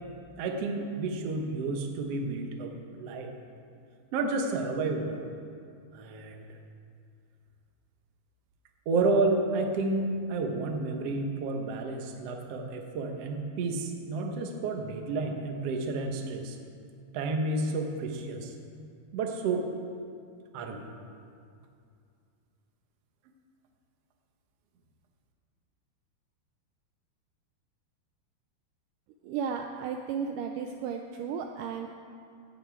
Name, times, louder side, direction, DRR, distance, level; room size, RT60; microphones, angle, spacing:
voice 1, 0.4-3.3 4.1-5.2 5.9-6.4 8.8-16.6 17.1-18.5 19.1-19.7 20.5-20.9, right 3 dB, 70° right, 3 dB, 1.5 m, -30 dB
voice 2, 29.2-31.9, right 6 dB, 90° right, 4 dB, 1.8 m, -34 dB
16.5 x 9.9 x 4.6 m, 2.4 s
omnidirectional pair, 4.4 m